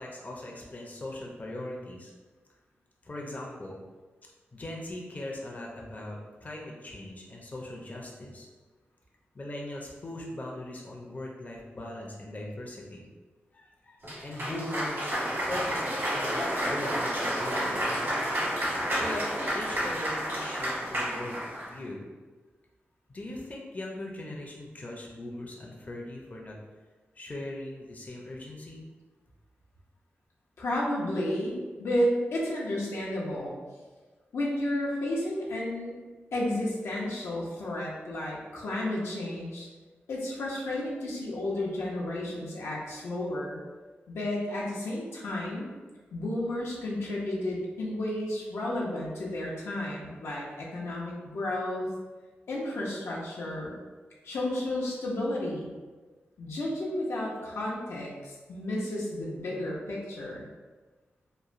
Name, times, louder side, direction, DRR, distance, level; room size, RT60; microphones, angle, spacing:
voice 1, 0.0-2.1 3.0-3.8 4.5-8.5 9.3-13.1 13.5-17.9 19.0-22.1 23.1-26.5 27.1-28.9, left 1 dB, 35° left, -1 dB, 0.5 m, -40 dB
Cheering / Applause, 14.0-21.7, equal, 65° right, 1.2 m, -30 dB
voice 2, 30.6-33.5 34.3-35.9 36.3-39.7 40.1-43.6 44.1-45.7 46.1-51.9 52.5-53.7 54.2-55.7 56.4-60.4, left 1 dB, 85° left, -4 dB, 0.6 m, -32 dB
3.0 x 2.1 x 2.5 m, 1.3 s
cardioid pair, 65°, 4 cm